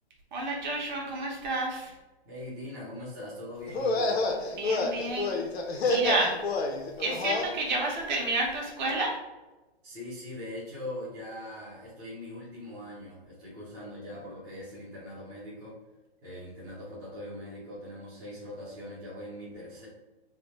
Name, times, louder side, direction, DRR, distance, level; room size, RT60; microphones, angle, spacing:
voice 1, 0.3-1.9 4.6-5.4 5.8-6.4 7.0-9.2, right 2 dB, 45° right, -2 dB, 1.1 m, -30 dB
voice 2, 2.2-4.2 9.8-15.8 16.2-19.9, left 1 dB, 10° right, -10 dB, 0.5 m, -41 dB
sound 1, 3.7-7.5, left 3 dB, 80° left, 0.7 m, -28 dB
3.3 x 2.1 x 4.1 m, 1.1 s
hypercardioid pair, 165°, 32 cm